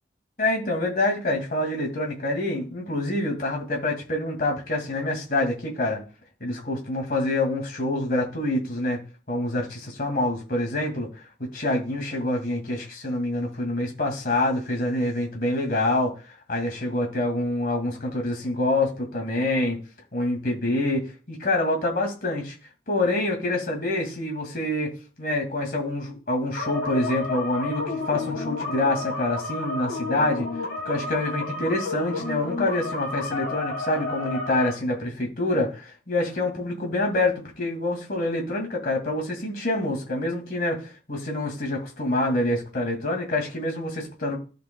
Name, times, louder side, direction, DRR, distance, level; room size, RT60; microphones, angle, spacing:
voice 1, 0.4-6.0 6.4-9.0 9.3-11.2 11.5-16.1 16.5-19.8 20.1-22.6 22.9-24.9 25.2-30.5 30.9-44.4, left 2 dB, 50° left, 2 dB, 2.1 m, -26 dB
sound 1, 26.6-34.7, left 3 dB, 70° left, 1.6 m, -31 dB
13.5 x 5.2 x 2.2 m, 0.35 s
head